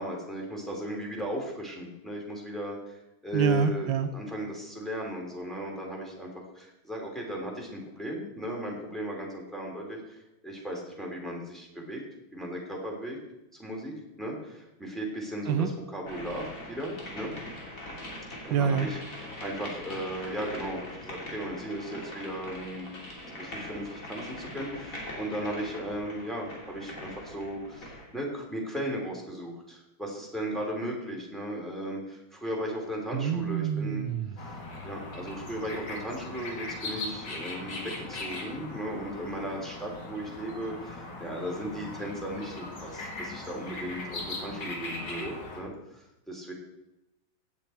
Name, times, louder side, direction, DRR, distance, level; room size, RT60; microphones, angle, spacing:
voice 1, 0.0-6.3 6.5-12.0 12.3-13.2 13.6-17.3 18.4-22.9 23.4-34.1 34.8-46.5, equal, ahead, -2 dB, 3.1 m, -36 dB
voice 2, 3.3-4.1 15.5-15.7 18.5-18.9 33.1-34.3, right 7 dB, 80° right, 8 dB, 1.4 m, -26 dB
sound 1, 16.1-28.1, left 1 dB, 40° left, 3.2 m, -42 dB
sound 2, 34.4-45.6, left 2 dB, 60° left, 2.5 m, -39 dB
16.5 x 8.5 x 4.5 m, 0.91 s
omnidirectional pair, 2.1 m